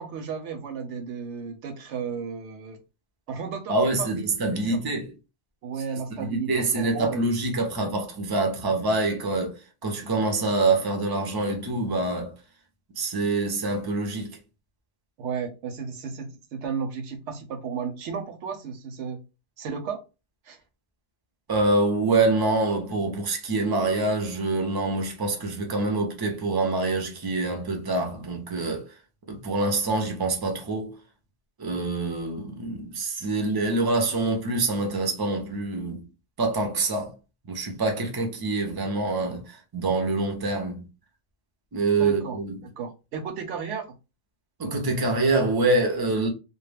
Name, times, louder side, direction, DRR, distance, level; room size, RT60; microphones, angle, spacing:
voice 1, 0.0-2.8 3.3-4.2 4.5-4.8 5.6-7.3 15.2-19.2 19.6-20.0 20.4-20.6 42.0-43.9, right 6 dB, 80° right, 0.9 m, -34 dB
voice 2, 3.7-5.1 6.1-12.3 13.0-14.4 21.5-28.9 29.3-31.0 31.6-36.1 36.4-37.2 37.4-40.8 41.7-42.6 44.6-46.3, right 2 dB, 35° right, 0.3 m, -25 dB
2.2 x 2.0 x 3.2 m
omnidirectional pair, 1.2 m